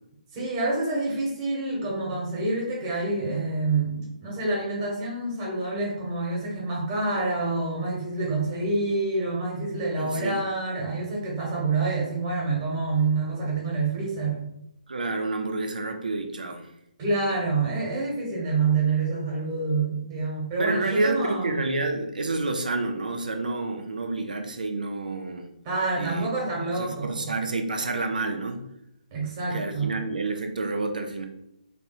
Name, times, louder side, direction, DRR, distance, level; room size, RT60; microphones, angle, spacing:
voice 1, 0.3-14.4 17.0-21.5 25.6-27.3 29.1-29.9, right 3 dB, 25° right, -3 dB, 1.5 m, -27 dB
voice 2, 10.0-10.4 14.9-16.7 20.6-25.5 25.9-26.3 26.7-28.7 29.5-31.3, right 2 dB, 70° right, 4 dB, 0.7 m, -29 dB
3.4 x 2.8 x 4.1 m, 0.82 s
figure-of-eight pair, 140°, 5 cm